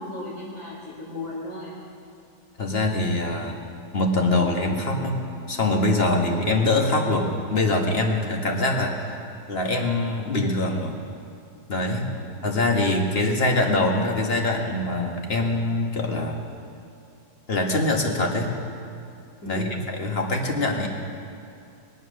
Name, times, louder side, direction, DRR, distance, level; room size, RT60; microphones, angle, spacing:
voice 1, 0.0-1.7 12.1-12.5 19.4-19.8, left 1 dB, 60° left, -10 dB, 3.4 m, -36 dB
voice 2, 2.6-3.6 3.9-9.1 9.5-11.0 11.7-12.1 12.4-16.4 17.5-18.6 19.5-20.9, left 2 dB, 35° left, 2 dB, 1.7 m, -24 dB
22.0 x 8.4 x 6.5 m, 2.6 s
omnidirectional pair, 1.8 m